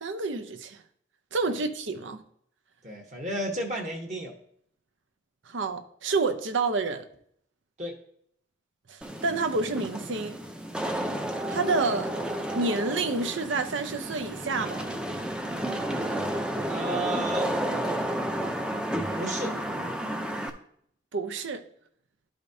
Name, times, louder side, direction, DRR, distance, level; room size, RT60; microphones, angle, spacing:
voice 1, 0.0-0.8 1.3-2.2 5.5-7.0 8.9-10.4 11.5-12.1 12.5-14.9 21.1-21.6, right 3 dB, 85° right, 0.7 m, -29 dB
voice 2, 2.8-4.3 7.8-8.0 16.7-17.5 19.1-19.6, right 1 dB, 40° right, 1.1 m, -32 dB
Wind / Rain, 9.0-20.5, right 1 dB, 5° right, 0.5 m, -31 dB
11.5 x 5.0 x 2.7 m
head